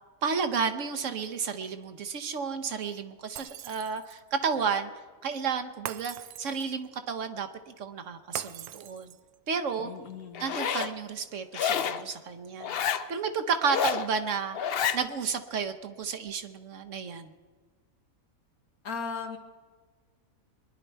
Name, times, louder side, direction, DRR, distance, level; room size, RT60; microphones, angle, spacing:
voice 1, 0.2-4.9 5.2-9.1 9.5-9.9 10.4-12.7 13.1-14.6 14.9-17.3, right 6 dB, 60° right, 8 dB, 1.1 m, -32 dB
Shatter, 3.4-4.3 5.9-6.8 8.4-9.4, right 10 dB, 85° right, 1.1 m, -42 dB
voice 2, 9.8-10.5 18.8-19.4, left 5 dB, 75° left, 5 dB, 1.8 m, -37 dB
Zipper (clothing), 10.3-10.9 11.5-12.0 12.6-13.1 13.6-14.1 14.5-15.0, left 8 dB, 60° left, 0.6 m, -29 dB
23.0 x 10.5 x 4.5 m, 1.5 s
omnidirectional pair, 1.5 m